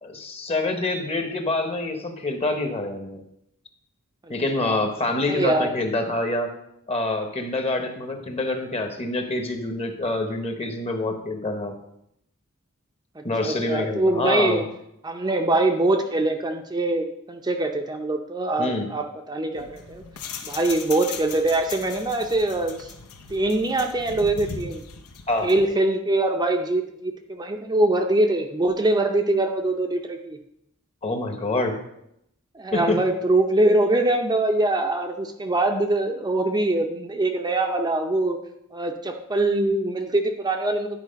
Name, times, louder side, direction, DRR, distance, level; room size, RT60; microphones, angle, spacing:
voice 1, 0.0-3.2 4.3-6.5 6.9-11.8 13.2-14.6 18.6-18.9 25.3-25.5 31.0-31.8 32.7-33.0, left 2 dB, 30° left, 5 dB, 1.0 m, -26 dB
voice 2, 4.2-4.8 5.3-5.7 13.2-14.6 15.0-20.0 20.4-22.9 23.3-24.8 25.4-30.4 32.5-38.4 38.7-41.0, right 2 dB, 20° right, 3 dB, 0.6 m, -23 dB
sound 1, 19.5-25.7, left 5 dB, 80° left, 0.9 m, -38 dB
11.0 x 4.7 x 5.2 m, 0.78 s
head